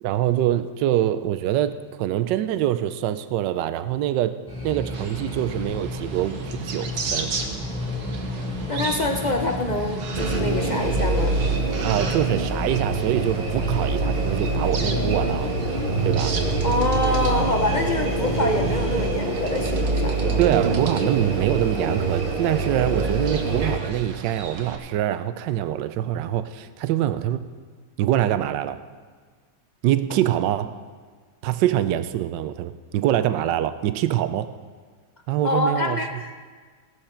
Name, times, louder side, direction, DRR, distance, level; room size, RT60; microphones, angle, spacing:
voice 1, 0.0-4.4 4.6-7.3 11.8-15.5 16.0-16.4 20.4-27.5 28.0-28.8 29.8-30.7 31.4-34.5 35.3-36.0, right 12 dB, 80° right, 12 dB, 1.3 m, -24 dB
sound 1, 4.5-19.2, equal, 5° left, 4.5 m, -32 dB
sound 2, 4.9-24.8, right 5 dB, 65° right, 1.6 m, -36 dB
voice 2, 8.7-11.4 16.6-20.4 35.4-36.3, left 2 dB, 60° left, 3 dB, 0.4 m, -25 dB
sound 3, 10.2-23.8, right 3 dB, 35° right, 1.2 m, -25 dB
16.0 x 12.0 x 4.4 m, 1.5 s
omnidirectional pair, 1.9 m